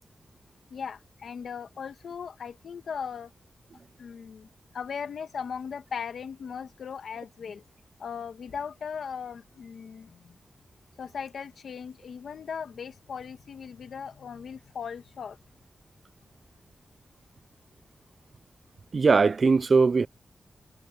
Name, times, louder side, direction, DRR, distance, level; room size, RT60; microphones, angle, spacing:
voice 1, 0.7-3.3 4.0-4.5 4.7-7.6 8.0-10.4 11.0-15.4, left 6 dB, 85° left, 1.6 m, -38 dB
voice 2, 18.9-20.1, right 4 dB, 50° right, 0.4 m, -20 dB
wide cardioid pair, 95°, 0 cm